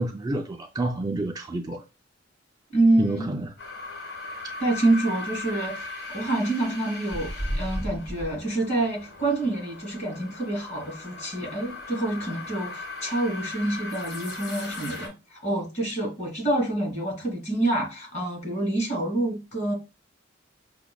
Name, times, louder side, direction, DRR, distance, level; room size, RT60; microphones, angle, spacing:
voice 1, 0.0-1.8 3.0-3.5, right 2 dB, 20° right, 0.4 m, -29 dB
voice 2, 2.7-3.3 4.6-15.1 15.4-19.7, right 2 dB, 40° left, 2.1 m, -27 dB
sound 1, 3.6-15.1, left 1 dB, 70° left, 1.8 m, -37 dB
5.8 x 2.1 x 2.2 m
head